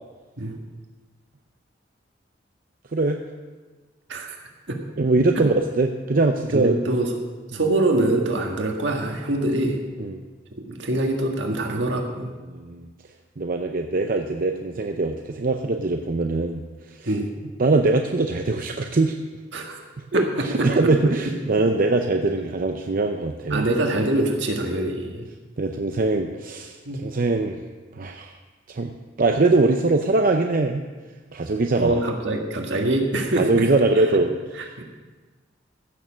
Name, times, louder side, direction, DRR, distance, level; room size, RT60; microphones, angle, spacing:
voice 1, 4.1-4.4 4.7-4.8 6.5-7.1 7.5-9.8 10.7-12.3 17.1-17.3 19.5-19.8 20.1-20.7 21.3-21.4 21.7-21.8 23.5-25.3 26.9-27.0 31.8-33.5 34.6-34.8, right 2 dB, 70° right, 2 dB, 1.8 m, -24 dB
voice 2, 5.0-6.7 10.0-10.2 12.5-12.9 13.4-16.6 16.9-17.1 17.6-19.2 20.1-23.7 25.6-27.6 28.0-28.3 28.7-28.9 29.2-30.8 31.3-32.0 32.8-32.9 33.3-34.4, right 3 dB, 50° right, 4 dB, 0.6 m, -22 dB
15.0 x 6.9 x 6.2 m, 1.3 s
head